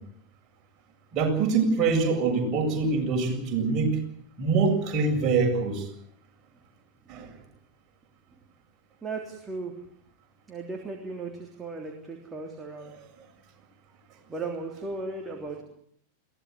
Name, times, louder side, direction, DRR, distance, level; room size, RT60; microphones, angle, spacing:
voice 1, 1.1-4.0 4.4-5.8 7.1-7.3, right 4 dB, 35° right, 1 dB, 7.5 m, -24 dB
voice 2, 9.0-9.7 10.5-12.9 14.3-15.6, right 3 dB, 15° right, 2 dB, 3.3 m, -36 dB
22.0 x 17.5 x 9.5 m, 0.65 s
figure-of-eight pair, 90°, 0 cm